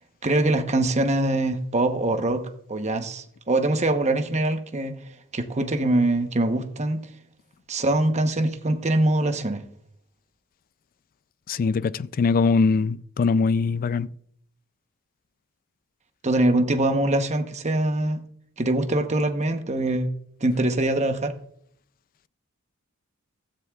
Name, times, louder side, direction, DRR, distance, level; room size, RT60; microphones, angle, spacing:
voice 1, 0.2-2.4 2.7-4.9 5.3-7.0 7.7-9.6 16.2-18.2 18.6-20.1 20.4-21.3, right 2 dB, 30° right, 1.0 m, -23 dB
voice 2, 11.5-14.1, left 4 dB, 40° left, 0.3 m, -22 dB
15.5 x 13.5 x 2.4 m
head